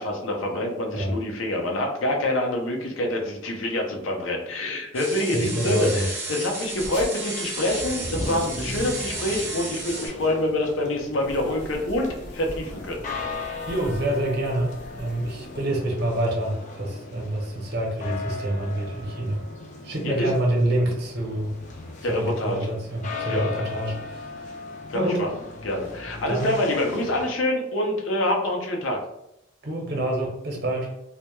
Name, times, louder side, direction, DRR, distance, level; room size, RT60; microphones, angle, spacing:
voice 1, 0.0-13.0 20.0-20.3 22.0-22.7 23.3-23.5 24.9-25.3 25.6-29.0, left 1 dB, 90° left, 1 dB, 0.5 m, -26 dB
sound 1, 4.9-10.1, right 2 dB, 15° right, 0.5 m, -33 dB
voice 2, 5.3-6.0 13.6-19.4 19.8-21.5 22.1-24.3 24.9-25.2 26.3-26.6 29.6-30.9, right 1 dB, 55° right, -1 dB, 0.7 m, -27 dB
sound 2, 6.8-7.0 7.6-16.1, equal, 60° left, 0.8 m, -38 dB
sound 3, 9.1-27.3, left 4 dB, 40° left, 0.3 m, -38 dB
2.1 x 2.1 x 2.9 m, 0.84 s
head